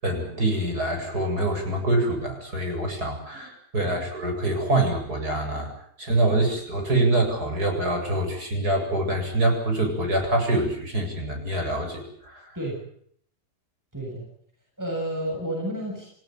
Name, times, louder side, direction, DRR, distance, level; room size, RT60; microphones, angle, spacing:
voice 1, 0.0-5.7 6.0-12.5, right 2 dB, 65° right, 3 dB, 8.5 m, -25 dB
voice 2, 13.9-14.3 14.8-16.1, right 1 dB, 10° right, -1 dB, 7.6 m, -31 dB
28.5 x 17.0 x 9.2 m, 0.66 s
omnidirectional pair, 1.8 m